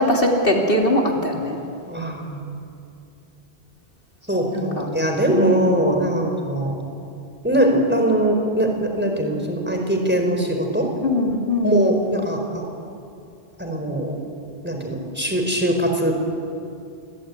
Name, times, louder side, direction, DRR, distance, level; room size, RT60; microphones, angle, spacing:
voice 1, 0.0-1.6 4.5-4.9 5.3-5.7 11.0-11.9, left 1 dB, 55° left, 0 dB, 3.0 m, -21 dB
voice 2, 1.9-2.4 4.3-6.8 7.4-10.9 11.6-12.6 13.6-14.1 14.6-16.1, right 1 dB, 10° right, 3 dB, 4.6 m, -21 dB
27.5 x 22.0 x 9.8 m, 2.5 s
omnidirectional pair, 1.1 m